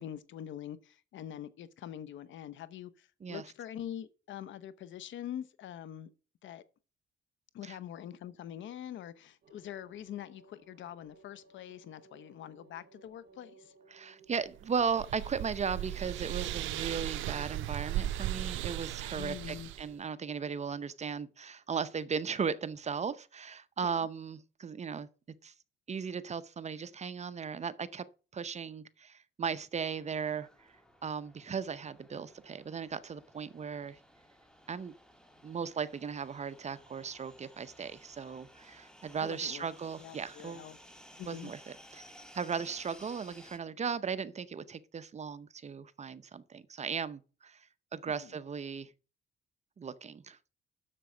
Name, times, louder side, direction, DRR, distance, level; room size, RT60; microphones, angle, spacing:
voice 1, 0.0-6.1 6.4-6.6 7.5-13.7 19.1-19.7 23.8-24.1 39.2-39.7 40.0-40.8 41.2-41.5 48.1-48.3, left 10 dB, 70° left, 0.8 m, -44 dB
sound 1, 9.4-21.7, right 3 dB, 60° right, 1.9 m, -62 dB
voice 2, 13.9-25.1 25.4-25.5 25.9-28.1 28.3-30.7 31.0-34.0 34.7-34.9 35.4-40.7 41.3-41.6 41.9-42.0 42.3-47.7 47.9-48.9 49.8-50.4, right 6 dB, 35° right, 0.7 m, -37 dB
sound 2, 14.5-19.9, right 14 dB, 80° right, 0.5 m, -37 dB
sound 3, 29.8-43.6, equal, 5° left, 1.6 m, -57 dB
7.6 x 6.8 x 6.2 m
cardioid pair, 90°, 20 cm